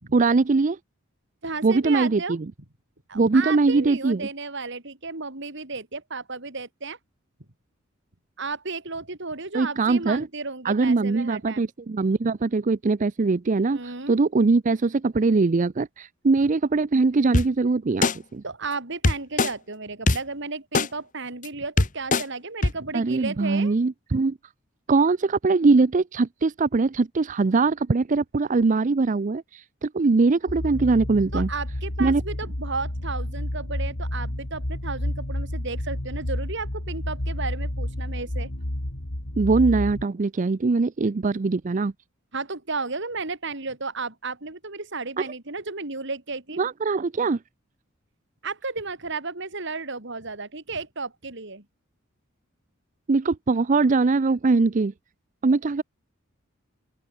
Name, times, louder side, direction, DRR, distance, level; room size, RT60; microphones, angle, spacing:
voice 1, 0.1-0.8 1.6-2.5 3.1-4.3 9.5-10.3 10.6-18.4 22.9-24.4 24.9-31.5 32.0-32.2 39.4-41.9 46.6-47.4 53.1-54.9 55.4-55.8, right 3 dB, 40° right, 0.5 m, -22 dB
voice 2, 1.4-2.4 3.1-7.0 8.4-11.7 13.7-14.2 18.4-23.7 31.3-38.5 42.3-46.6 48.4-51.6, right 3 dB, 60° right, 3.2 m, -33 dB
sound 1, 17.3-17.5 18.0-18.1 19.0-19.5 20.1-20.2 20.7-20.9 21.4-21.5 21.8-22.2 22.6-22.7, left 2 dB, 40° left, 1.4 m, -20 dB
sound 2, 30.5-40.0, left 1 dB, 80° left, 3.3 m, -30 dB
open air
head